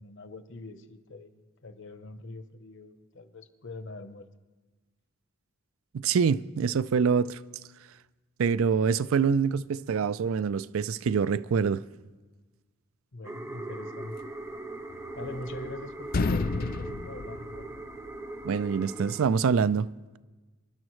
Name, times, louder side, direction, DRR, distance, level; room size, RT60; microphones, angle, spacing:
voice 1, 0.0-4.3 13.1-14.2 15.1-17.8, left 2 dB, 60° left, 0.9 m, -43 dB
voice 2, 5.9-7.4 8.4-11.8 18.4-19.9, right 6 dB, 70° right, 0.4 m, -25 dB
sound 1, 13.2-19.2, right 2 dB, 15° right, 0.7 m, -40 dB
sound 2, 14.9-15.7 16.0-18.2, left 3 dB, 45° left, 0.5 m, -31 dB
26.5 x 11.5 x 3.1 m
head